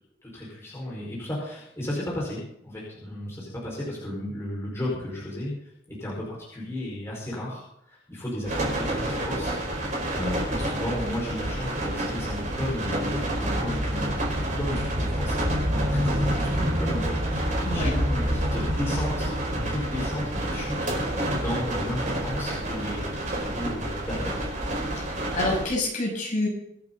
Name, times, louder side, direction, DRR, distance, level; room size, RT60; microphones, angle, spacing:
voice 1, 0.2-5.5 5.9-9.8 10.1-20.9 21.3-24.5, left 1 dB, 15° left, -6 dB, 5.0 m, -34 dB
sound 1, 8.4-25.7, right 1 dB, 45° right, 4.8 m, -28 dB
voice 2, 25.3-26.5, left 2 dB, 45° left, -3 dB, 7.6 m, -27 dB
25.0 x 9.4 x 4.0 m, 0.76 s
head